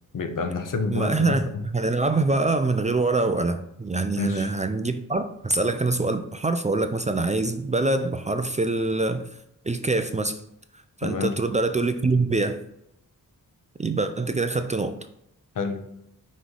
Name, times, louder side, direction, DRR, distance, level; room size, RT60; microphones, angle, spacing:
voice 1, 0.1-1.6 4.2-4.5 11.0-11.4 15.5-15.8, left 4 dB, 65° left, 6 dB, 0.9 m, -28 dB
voice 2, 0.9-9.3 9.7-10.4 11.0-12.6 13.8-14.9, right 3 dB, 20° right, 9 dB, 0.4 m, -24 dB
6.0 x 3.2 x 5.3 m, 0.79 s
wide cardioid pair, 100°, 34 cm